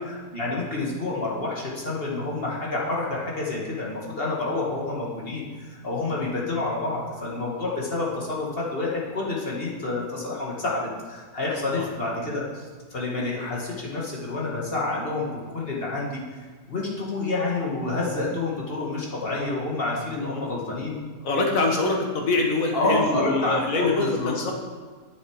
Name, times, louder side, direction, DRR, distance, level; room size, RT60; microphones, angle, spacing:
voice 1, 0.3-5.5 5.8-16.2 16.7-21.0 22.7-24.3, left 2 dB, 35° left, -4 dB, 1.9 m, -28 dB
voice 2, 20.2-20.5 21.2-24.5, left 3 dB, 60° left, 2 dB, 1.7 m, -25 dB
10.0 x 7.1 x 4.7 m, 1.5 s
omnidirectional pair, 1.7 m